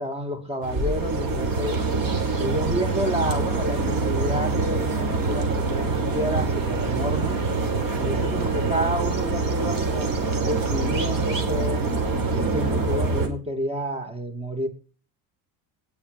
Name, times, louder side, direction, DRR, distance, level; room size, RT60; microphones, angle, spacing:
voice 1, 0.0-1.9 2.4-7.4 8.0-11.9 12.3-14.7, equal, 15° right, 2.5 m, -30 dB
sound 1, 0.6-13.3, right 3 dB, 50° right, 4.9 m, -25 dB
19.0 x 7.2 x 5.3 m
cardioid pair, 130°, 43 cm